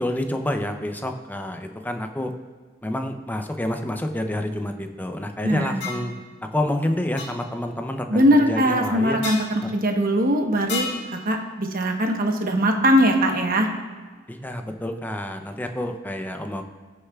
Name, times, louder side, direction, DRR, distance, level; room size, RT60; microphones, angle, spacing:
voice 1, 0.0-2.3 2.8-6.2 6.5-9.2 9.6-9.7 14.3-16.6, left 1 dB, 10° left, 5 dB, 0.6 m, -28 dB
voice 2, 5.4-5.8 8.1-10.9 11.2-13.7, equal, 45° right, 3 dB, 1.1 m, -21 dB
sound 1, 5.8-6.1 7.2-7.3 9.2-9.5 10.7-11.1, left 3 dB, 65° left, 2.0 m, -30 dB
18.5 x 6.5 x 2.4 m, 1.4 s
head